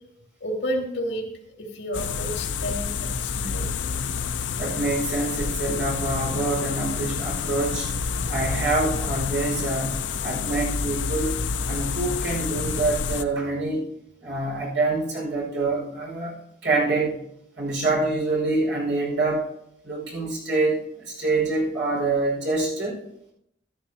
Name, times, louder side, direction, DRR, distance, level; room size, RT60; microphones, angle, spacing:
voice 1, 0.4-3.7, equal, 70° left, 1 dB, 2.6 m, -31 dB
sound 1, 1.9-13.2, left 5 dB, 90° left, 0.6 m, -28 dB
voice 2, 4.6-7.9 8.3-11.4 11.7-13.9 14.2-17.2 17.6-19.5 19.8-23.0, right 2 dB, 75° right, -2 dB, 5.2 m, -26 dB
14.5 x 11.5 x 2.8 m, 0.75 s
head